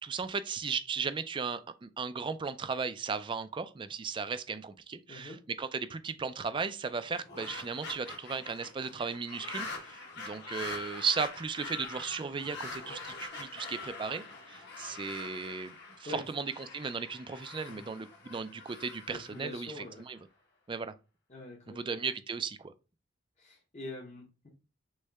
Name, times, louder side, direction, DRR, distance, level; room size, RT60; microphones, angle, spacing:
voice 1, 0.0-15.7 16.0-20.2 20.7-20.9 21.7-22.7, right 5 dB, 25° right, 0.3 m, -36 dB
voice 2, 5.1-5.4 16.0-16.2 17.7-17.8 19.1-20.1 21.3-21.8 23.4-24.5, left 2 dB, 35° left, 0.9 m, -44 dB
sound 1, 7.0-20.2, left 3 dB, 60° left, 1.4 m, -44 dB
6.3 x 2.1 x 3.4 m
head